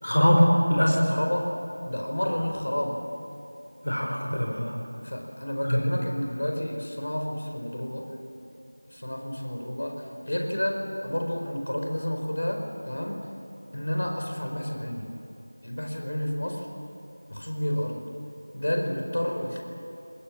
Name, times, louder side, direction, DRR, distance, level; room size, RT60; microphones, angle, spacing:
voice 1, 0.0-1.1 3.8-4.8 5.6-5.8, equal, 75° left, -1 dB, 5.1 m, -22 dB
voice 2, 1.1-1.6 1.8-3.0 5.0-8.1 8.9-13.2 13.7-15.1 15.6-16.7 17.3-18.0 18.5-19.6, equal, 55° left, 2 dB, 4.8 m, -30 dB
25.5 x 23.0 x 8.7 m, 2.8 s
figure-of-eight pair, 175°, 0 cm